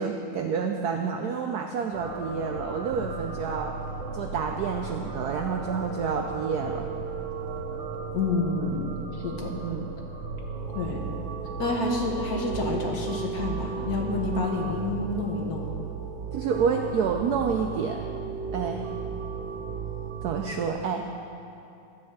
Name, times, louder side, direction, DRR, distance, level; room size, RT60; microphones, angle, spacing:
voice 1, 0.0-3.7 4.1-6.9 9.5-9.9 16.3-18.0 18.5-18.9 20.2-21.1, right 6 dB, 90° right, 3 dB, 0.8 m, -29 dB
sound 1, 1.9-20.7, right 5 dB, 70° right, 1.6 m, -35 dB
voice 2, 8.1-8.9 9.1-9.5 10.7-11.0 11.6-15.7, left 3 dB, 50° left, -1 dB, 1.4 m, -29 dB
13.0 x 4.4 x 7.9 m, 2.8 s
omnidirectional pair, 2.3 m